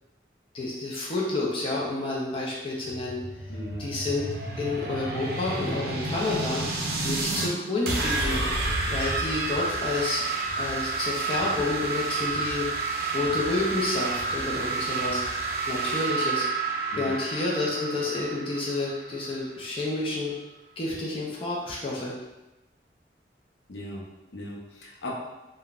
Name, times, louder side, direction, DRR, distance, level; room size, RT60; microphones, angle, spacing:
voice 1, 0.5-3.2 3.8-4.2 4.6-6.6 7.0-8.5 8.9-10.2 10.6-12.7 13.1-15.2 15.7-16.5 17.0-20.3 20.8-22.1, left 2 dB, 30° left, -4 dB, 0.5 m, -29 dB
sound 1, 2.8-7.5 7.9-19.4, right 3 dB, 55° right, 0.5 m, -30 dB
voice 2, 3.5-3.9 16.9-17.1 23.7-25.1, left 1 dB, 90° left, -3 dB, 0.6 m, -38 dB
3.6 x 2.2 x 2.4 m, 1.0 s
head